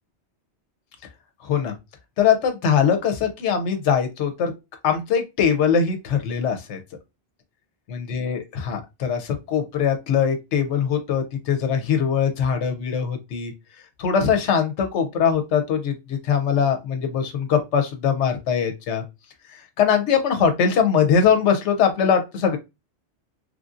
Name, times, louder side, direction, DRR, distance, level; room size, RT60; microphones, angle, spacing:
voice 1, 1.4-1.7 2.2-4.5 4.8-6.8 7.9-13.5 14.0-19.0 19.5-22.6, left 7 dB, 85° left, 5 dB, 0.9 m, -22 dB
3.2 x 2.5 x 2.4 m, 0.24 s
omnidirectional pair, 1.2 m